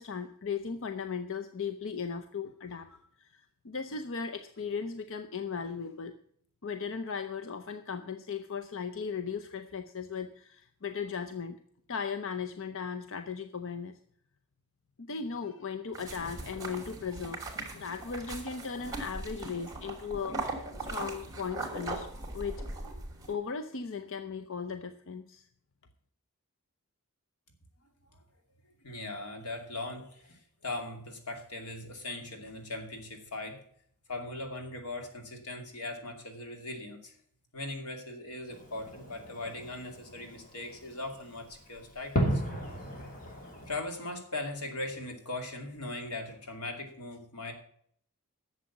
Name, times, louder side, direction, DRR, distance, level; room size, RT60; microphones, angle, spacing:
voice 1, 0.0-6.2 6.6-11.6 11.9-14.0 15.0-17.4 17.7-22.1 22.3-22.6 23.3-25.4, left 6 dB, 60° left, 9 dB, 0.7 m, -37 dB
sound 1, 15.9-23.3, right 2 dB, 15° right, 3.3 m, -39 dB
voice 2, 28.8-33.6 34.1-37.1 37.5-42.4 43.7-47.5, left 2 dB, 90° left, 5 dB, 2.7 m, -39 dB
Fireworks, 38.5-43.8, equal, 40° left, 2.7 m, -36 dB
11.5 x 7.5 x 7.2 m, 0.63 s
head